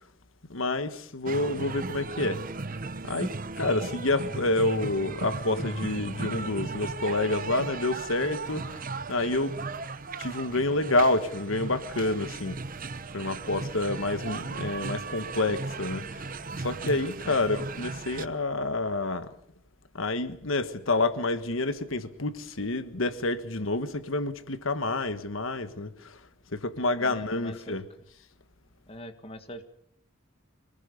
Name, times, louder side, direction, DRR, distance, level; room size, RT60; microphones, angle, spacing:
voice 1, 0.5-2.4 3.0-9.6 10.2-12.6 13.1-16.3 16.6-19.3 19.9-26.2 26.5-27.8, left 2 dB, 75° left, 1.5 m, -28 dB
sound 1, 1.2-18.3, right 3 dB, 45° right, 1.0 m, -36 dB
voice 2, 17.2-17.6 27.0-27.8 28.9-29.6, equal, 30° left, 1.8 m, -42 dB
25.5 x 19.5 x 6.9 m
head